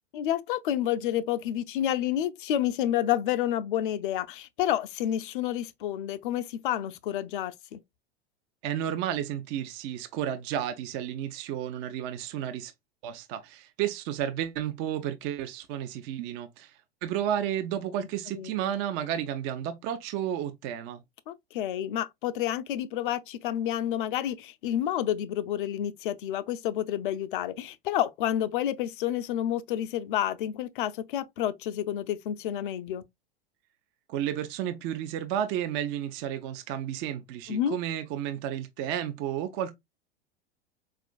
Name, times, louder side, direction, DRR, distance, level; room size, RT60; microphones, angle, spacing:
voice 1, 0.1-7.8 18.3-18.5 21.3-33.0 37.5-37.8, left 11 dB, 55° left, 0.5 m, -29 dB
voice 2, 8.6-12.7 13.0-16.7 17.0-21.0 34.1-39.7, right 10 dB, 35° right, 0.6 m, -32 dB
4.3 x 2.5 x 2.3 m
figure-of-eight pair, 90°, 31 cm